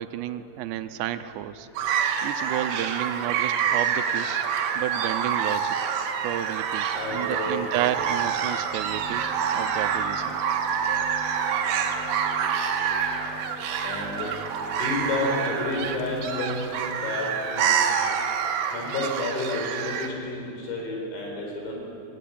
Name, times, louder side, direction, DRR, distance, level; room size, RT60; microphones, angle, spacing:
voice 1, 0.0-1.7 2.2-4.4 4.8-5.8 6.2-9.2 9.5-10.4, right 12 dB, 80° right, 11 dB, 2.8 m, -31 dB
sound 1, 1.7-20.1, right 7 dB, 65° right, 2.4 m, -27 dB
voice 2, 6.9-7.6 13.8-14.3 14.8-16.6 17.0-17.3 17.5-17.7 18.7-21.8, left 2 dB, 90° left, 0 dB, 6.7 m, -30 dB
sound 2, 7.5-17.2, equal, 65° left, 5.3 m, -45 dB
18.5 x 18.0 x 9.9 m, 2.9 s
omnidirectional pair, 5.2 m